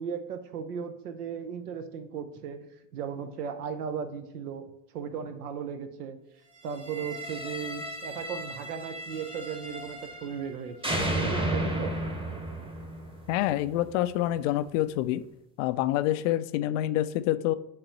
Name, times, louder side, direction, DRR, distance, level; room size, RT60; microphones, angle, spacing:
voice 1, 0.0-2.6 2.9-4.7 4.9-6.2 6.6-12.0, right 7 dB, 70° right, 9 dB, 0.9 m, -36 dB
sound 1, 6.7-10.5 10.8-13.9, right 1 dB, 10° right, 1.1 m, -34 dB
voice 2, 13.3-15.2 15.6-17.5, left 14 dB, 55° left, 13 dB, 0.5 m, -27 dB
9.5 x 3.7 x 3.0 m, 0.84 s
figure-of-eight pair, 65°, 47 cm